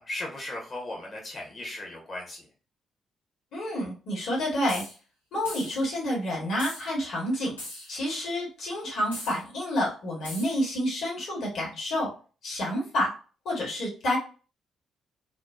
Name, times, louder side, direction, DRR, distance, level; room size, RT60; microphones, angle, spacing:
voice 1, 0.0-2.5, left 1 dB, 30° left, -1 dB, 1.0 m, -37 dB
voice 2, 3.5-4.8 5.3-7.5 7.9-12.1 12.4-13.1 13.4-14.2, left 1 dB, 60° left, -3 dB, 1.1 m, -29 dB
sound 1, 4.7-5.0 5.5-5.8 6.6-6.9 7.6-8.0 9.1-9.4 10.2-10.6, left 1 dB, 85° left, 0.6 m, -40 dB
2.5 x 2.2 x 2.3 m, 0.37 s
figure-of-eight pair, 40°, 0 cm